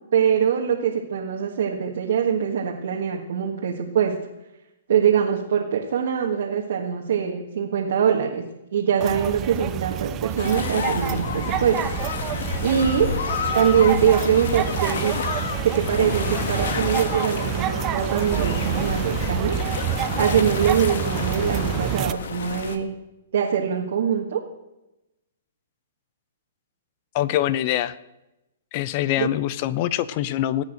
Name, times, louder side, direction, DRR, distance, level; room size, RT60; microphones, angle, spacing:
voice 1, 0.1-4.1 4.9-8.4 8.7-11.9 12.6-13.1 13.5-15.1 15.6-19.6 20.2-22.9 23.3-24.4 29.2-29.3, right 8 dB, 70° right, -1 dB, 1.7 m, -23 dB
sound 1, 9.0-22.1, right 12 dB, 25° right, 0.5 m, -28 dB
sound 2, 10.4-22.8, left 6 dB, 70° left, 1.4 m, -30 dB
voice 2, 27.1-28.0 28.7-30.6, left 13 dB, 40° left, 17 dB, 0.7 m, -24 dB
17.5 x 8.4 x 6.5 m, 0.95 s
hypercardioid pair, 145°, 0 cm